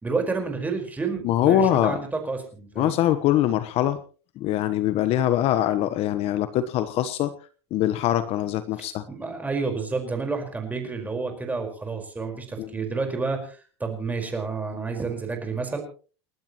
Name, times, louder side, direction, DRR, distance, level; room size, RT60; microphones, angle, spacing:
voice 1, 0.0-3.0 8.8-15.8, right 4 dB, 10° right, 4 dB, 4.9 m, -30 dB
voice 2, 1.2-2.0 2.8-4.0 4.4-7.3 7.7-9.0 12.6-12.7, left 12 dB, 45° left, 12 dB, 1.2 m, -23 dB
29.5 x 12.0 x 3.1 m, 0.39 s
supercardioid pair, 120°, 14 cm